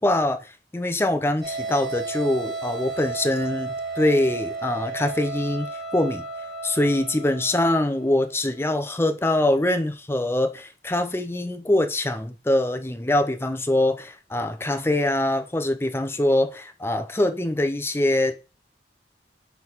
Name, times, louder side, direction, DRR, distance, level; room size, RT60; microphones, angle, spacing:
voice 1, 0.0-6.2 6.6-18.3, left 1 dB, 15° left, 0.5 m, -23 dB
sound 1, 1.4-8.3, right 3 dB, 5° right, 1.9 m, -33 dB
4.6 x 3.9 x 5.6 m
head